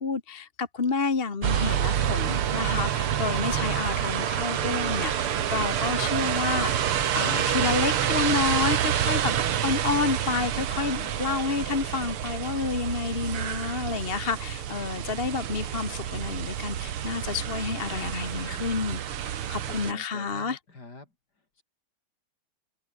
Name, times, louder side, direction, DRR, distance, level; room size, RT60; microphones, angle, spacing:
voice 1, 0.0-20.6, left 4 dB, 30° left, 1.5 m, -30 dB
sound 1, 1.4-19.9, right 10 dB, 75° right, 2.3 m, -28 dB
voice 2, 17.9-18.7 19.5-21.6, left 3 dB, 45° left, 5.1 m, -48 dB
omnidirectional pair, 2.4 m